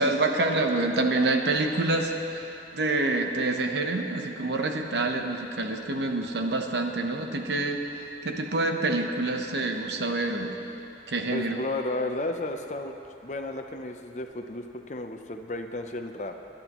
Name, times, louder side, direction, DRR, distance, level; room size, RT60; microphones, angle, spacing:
voice 1, 0.0-10.6 11.1-11.6, right 2 dB, 75° right, 3 dB, 1.0 m, -27 dB
voice 2, 11.3-12.9 13.2-16.4, left 2 dB, 40° left, 5 dB, 0.7 m, -33 dB
22.0 x 10.5 x 3.1 m, 3.0 s
head